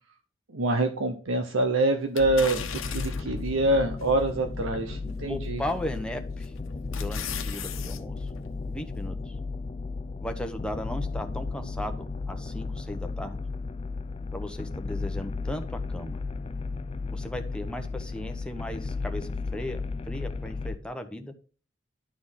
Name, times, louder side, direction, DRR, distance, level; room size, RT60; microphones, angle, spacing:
voice 1, 0.5-5.6, right 2 dB, 75° right, 5 dB, 0.9 m, -25 dB
sound 1, 2.2-3.4 4.0-4.1 5.7-6.0 6.4-8.0 8.4-8.5, left 8 dB, 85° left, 1.1 m, -37 dB
sound 2, 2.2-20.8, left 3 dB, 30° left, 0.4 m, -34 dB
voice 2, 5.3-6.5 6.9-8.3 8.7-9.3 10.2-13.4 14.3-16.2 17.1-19.8 20.1-21.3, left 1 dB, 5° left, 5 dB, 1.0 m, -36 dB
11.5 x 4.4 x 5.6 m, 0.37 s
head